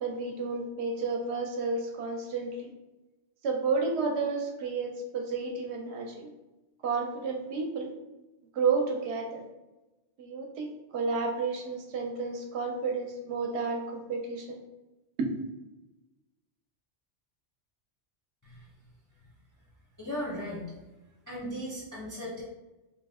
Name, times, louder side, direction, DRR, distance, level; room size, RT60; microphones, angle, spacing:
voice 1, 0.0-2.7 3.4-6.3 6.8-7.9 8.5-9.4 10.2-14.6 15.2-15.3, right 4 dB, 70° right, 2 dB, 0.8 m, -31 dB
voice 2, 20.0-20.7 21.3-22.4, equal, 25° left, -5 dB, 0.5 m, -37 dB
2.9 x 2.0 x 3.4 m, 1.0 s
omnidirectional pair, 1.2 m